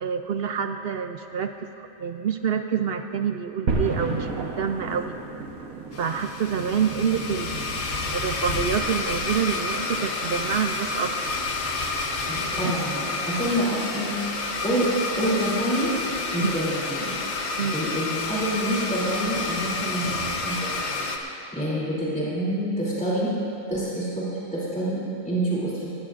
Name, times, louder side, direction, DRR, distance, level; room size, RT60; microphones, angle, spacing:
voice 1, 0.0-5.2 6.0-7.6 8.1-11.3 12.6-12.7 16.4-16.5 17.6-17.8, right 7 dB, 60° right, 7 dB, 0.6 m, -27 dB
sound 1, 3.7-13.9, right 3 dB, 90° right, 1.6 m, -35 dB
Domestic sounds home sounds, 5.9-21.2, left 3 dB, 55° left, 1.2 m, -29 dB
voice 2, 12.3-14.1 14.6-14.9 15.2-16.0 16.3-17.2 17.7-23.3 23.7-26.0, right 1 dB, 5° left, -8 dB, 2.9 m, -27 dB
19.5 x 16.5 x 2.5 m, 2.8 s
omnidirectional pair, 1.4 m